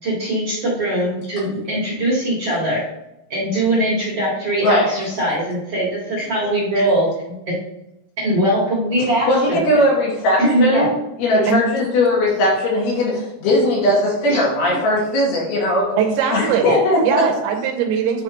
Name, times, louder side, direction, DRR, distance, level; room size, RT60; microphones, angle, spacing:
voice 1, 0.0-2.8 3.3-7.5 8.2-9.6 10.4-10.9 14.3-14.4 16.6-16.8, right 1 dB, 50° right, -7 dB, 1.9 m, -21 dB
voice 2, 4.6-4.9 9.3-10.9 11.2-16.0 16.3-17.2, left 1 dB, 75° left, -5 dB, 4.8 m, -18 dB
voice 3, 16.0-16.7 17.0-18.2, right 8 dB, 80° right, 4 dB, 2.9 m, -20 dB
11.0 x 4.8 x 3.0 m, 0.90 s
omnidirectional pair, 5.4 m